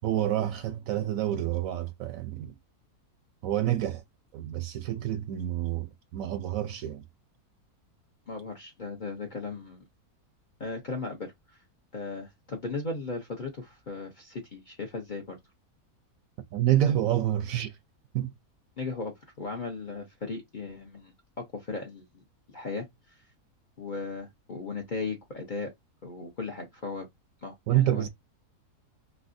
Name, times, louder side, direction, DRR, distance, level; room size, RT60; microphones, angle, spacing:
voice 1, 0.0-2.5 3.4-4.0 4.3-7.0 16.5-17.8 18.1-18.3 27.7-28.1, right 12 dB, 70° right, 0.9 m, -28 dB
voice 2, 8.3-9.9 10.6-11.3 11.9-15.4 18.8-23.2 23.8-25.7 26.0-27.1 27.4-28.1, left 3 dB, 45° left, 0.6 m, -37 dB
3.2 x 2.7 x 2.5 m
omnidirectional pair, 1.7 m